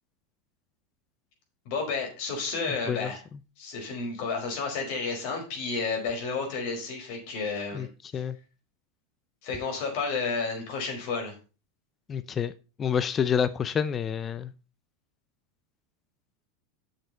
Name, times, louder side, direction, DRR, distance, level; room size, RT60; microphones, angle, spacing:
voice 1, 1.6-3.2 3.6-7.9 8.1-8.2 9.4-11.3, left 4 dB, 60° left, 4.8 m, -31 dB
voice 2, 12.1-12.5 12.8-14.5, left 7 dB, 25° left, 0.6 m, -28 dB
7.7 x 6.7 x 5.5 m
hypercardioid pair, 115°, 0 cm